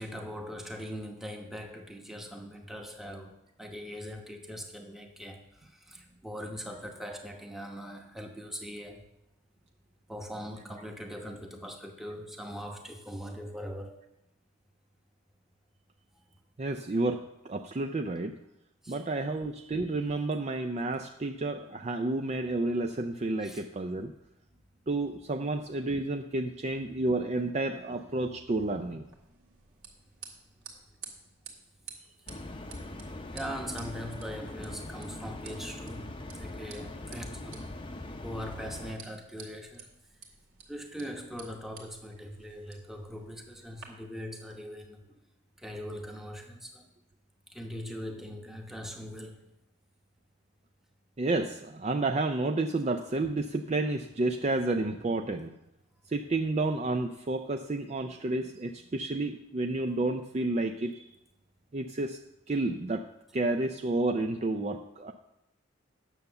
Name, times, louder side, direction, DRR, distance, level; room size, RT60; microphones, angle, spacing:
voice 1, 0.0-9.1 10.1-14.0 18.8-19.0 23.4-23.7 25.3-25.4 33.3-36.1 36.3-37.7 38.2-39.9 40.7-45.0 45.6-46.9 47.5-49.4, equal, ahead, 2 dB, 1.0 m, -41 dB
voice 2, 16.6-18.4 18.9-24.1 24.9-29.0 51.2-55.5 56.1-61.0 61.7-62.2 62.5-63.1 63.3-65.1, right 2 dB, 30° right, 5 dB, 0.4 m, -30 dB
sound 1, 29.0-43.8, right 6 dB, 70° right, 1.9 m, -52 dB
sound 2, 32.3-39.0, left 1 dB, 25° left, 0.7 m, -42 dB
9.2 x 6.8 x 6.7 m, 0.88 s
head